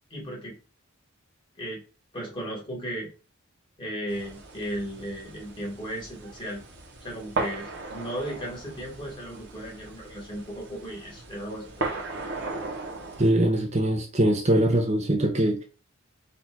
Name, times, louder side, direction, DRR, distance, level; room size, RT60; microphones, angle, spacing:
voice 1, 0.1-0.6 1.6-1.8 2.1-3.1 3.8-6.6 7.0-12.0, equal, 25° left, 1.9 m, -36 dB
sound 1, 4.1-13.3, right 3 dB, 55° right, 1.1 m, -37 dB
voice 2, 13.2-15.6, right 1 dB, 30° right, 0.6 m, -22 dB
4.2 x 2.8 x 4.4 m
head